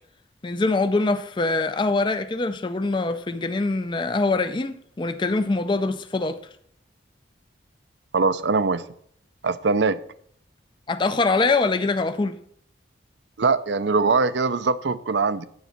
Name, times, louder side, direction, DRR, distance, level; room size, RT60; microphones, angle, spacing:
voice 1, 0.4-6.4 10.9-12.4, left 3 dB, 25° left, 0.4 m, -23 dB
voice 2, 8.1-8.8 9.4-10.0 13.4-15.5, right 4 dB, 70° right, 0.5 m, -22 dB
9.5 x 8.3 x 4.3 m
head